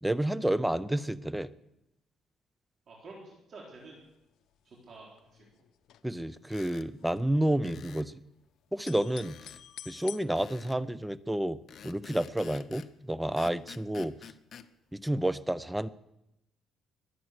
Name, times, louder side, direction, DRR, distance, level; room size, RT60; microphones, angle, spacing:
voice 1, 0.0-1.5 6.0-8.2 8.7-9.4 9.9-11.6 11.8-14.1 14.9-15.9, right 1 dB, 5° right, 16 dB, 0.6 m, -30 dB
voice 2, 2.9-4.0 4.7-5.6, right 3 dB, 45° right, -3 dB, 4.1 m, -50 dB
sound 1, 3.8-4.2 4.5-4.6 4.7-6.4 6.7-8.4 8.7-10.2, left 11 dB, 80° left, 0.8 m, -48 dB
sound 2, 6.4-6.9 7.6-8.1 9.2-9.6 10.4-10.8 11.7-12.9 13.4-14.7, left 7 dB, 50° left, 0.8 m, -49 dB
23.0 x 9.1 x 6.5 m, 0.87 s
cardioid pair, 125°, 0 cm